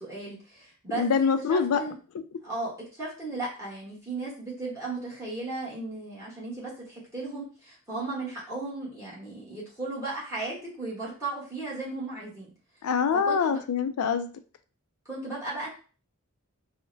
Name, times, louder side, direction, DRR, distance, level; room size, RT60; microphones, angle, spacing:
voice 1, 0.0-1.0 1.5-1.9 2.4-12.5 13.2-13.6 15.0-15.7, right 2 dB, 15° right, -6 dB, 1.1 m, -35 dB
voice 2, 0.9-1.8 2.1-2.2 12.8-14.3, left 6 dB, 85° left, 10 dB, 0.3 m, -25 dB
4.8 x 2.1 x 2.6 m, 0.37 s
head